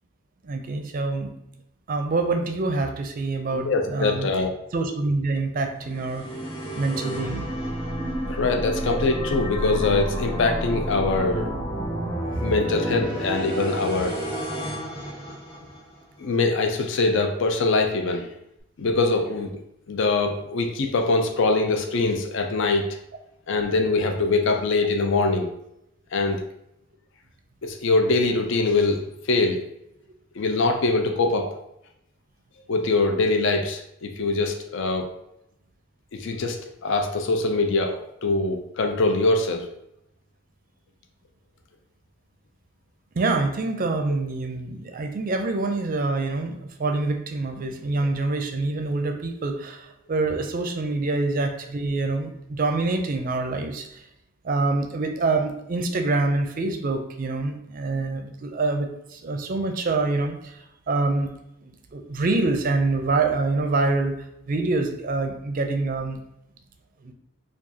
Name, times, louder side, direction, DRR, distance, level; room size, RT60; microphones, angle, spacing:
voice 1, 0.4-1.3 1.9-4.3 4.7-6.2 6.8-7.5 43.2-54.0 54.4-61.3 61.6-66.2 67.0-67.1, right 3 dB, 40° right, 5 dB, 0.4 m, -26 dB
voice 2, 3.5-4.5 8.3-11.5 12.4-14.2 16.2-18.3 18.8-19.6 19.9-22.9 23.5-25.5 26.1-26.4 27.6-29.7 30.4-31.5 32.7-35.1 36.1-39.7, left 3 dB, 60° left, 4 dB, 0.4 m, -23 dB
sound 1, 5.8-16.0, right 1 dB, 30° left, 1.0 m, -30 dB
4.7 x 2.3 x 2.7 m, 0.81 s
head